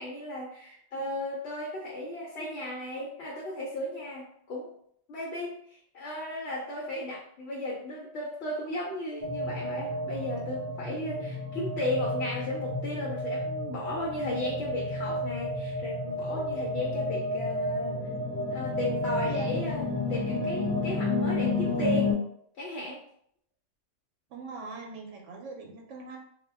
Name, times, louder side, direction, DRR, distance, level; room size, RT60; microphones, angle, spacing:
voice 1, 0.0-4.8 5.1-18.0 18.5-22.2 22.6-23.0, left 1 dB, 65° left, -4 dB, 0.8 m, -35 dB
sound 1, 9.2-22.1, left 2 dB, 55° right, 0.9 m, -31 dB
voice 2, 24.3-26.2, right 3 dB, 80° right, 1 dB, 0.9 m, -41 dB
2.2 x 2.1 x 3.3 m, 0.67 s
omnidirectional pair, 1.2 m